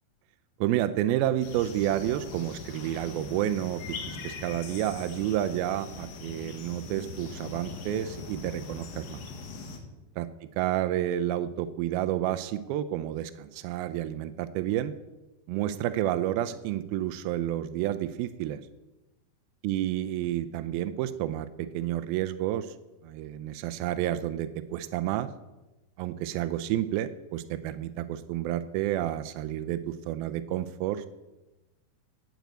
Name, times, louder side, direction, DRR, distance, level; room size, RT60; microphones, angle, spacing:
voice 1, 0.6-9.2 10.2-10.3 10.6-14.9 15.5-18.6 19.6-22.8 23.0-25.3 26.0-31.1, right 12 dB, 85° right, 11 dB, 2.2 m, -30 dB
sound 1, 1.4-9.8, left 4 dB, 85° left, 3.8 m, -41 dB
9.3 x 9.2 x 8.2 m, 1.1 s
omnidirectional pair, 4.8 m